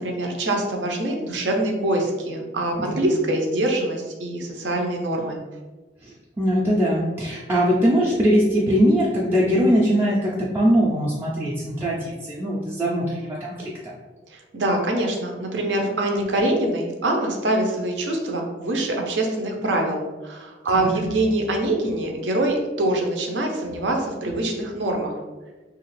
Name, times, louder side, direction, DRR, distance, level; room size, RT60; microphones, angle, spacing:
voice 1, 0.0-5.4 14.5-25.2, right 1 dB, 80° right, 2 dB, 0.6 m, -24 dB
voice 2, 6.0-13.9 20.7-20.9, equal, 15° right, -7 dB, 0.4 m, -21 dB
2.7 x 2.4 x 3.1 m, 1.2 s
head